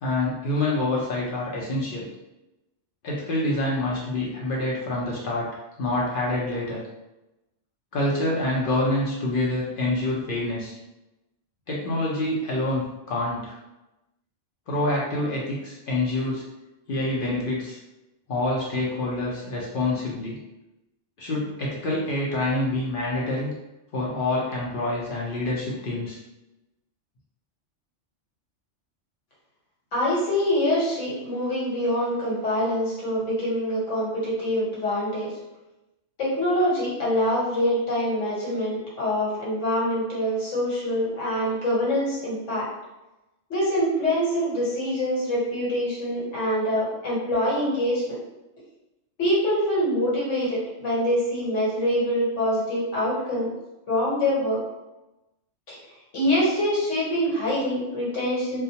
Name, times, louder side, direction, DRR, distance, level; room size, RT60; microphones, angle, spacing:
voice 1, 0.0-2.1 3.0-5.5 5.8-6.8 7.9-10.7 11.7-13.5 14.7-16.4 16.9-17.8 18.3-20.4 21.2-23.5 23.9-26.2, left 2 dB, 55° left, -5 dB, 0.7 m, -26 dB
voice 2, 29.9-35.3 36.2-42.7 43.5-48.0 49.2-53.5 53.9-54.6 55.7-55.8 56.1-58.6, equal, 75° left, -6 dB, 1.2 m, -25 dB
2.2 x 2.2 x 2.7 m, 0.98 s
omnidirectional pair, 1.3 m